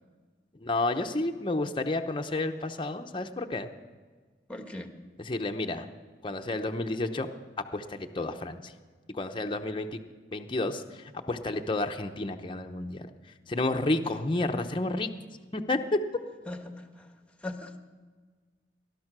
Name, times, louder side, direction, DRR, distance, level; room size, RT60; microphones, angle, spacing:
voice 1, 0.6-3.7 5.2-5.9 6.2-7.3 7.7-8.7 9.1-10.0 10.3-13.1 13.5-15.1 15.5-16.0, left 2 dB, 30° left, 4 dB, 0.8 m, -30 dB
voice 2, 4.5-4.9 16.5-17.1 17.4-17.8, left 1 dB, 5° left, 6 dB, 1.3 m, -39 dB
19.5 x 12.0 x 6.1 m, 1.4 s
head